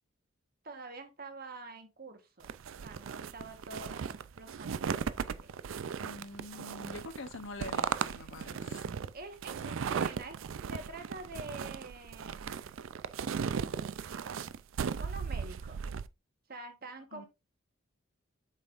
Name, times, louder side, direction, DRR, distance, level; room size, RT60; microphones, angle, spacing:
voice 1, 0.6-2.5 2.8-5.5 9.1-10.4 10.7-12.7 15.0-15.8 16.5-17.3, right 2 dB, 50° right, 1.2 m, -46 dB
sound 1, 2.4-16.1, right 6 dB, 75° right, 0.4 m, -37 dB
voice 2, 6.0-9.1 17.1-17.3, left 2 dB, 70° left, 0.8 m, -46 dB
7.5 x 5.3 x 2.5 m
head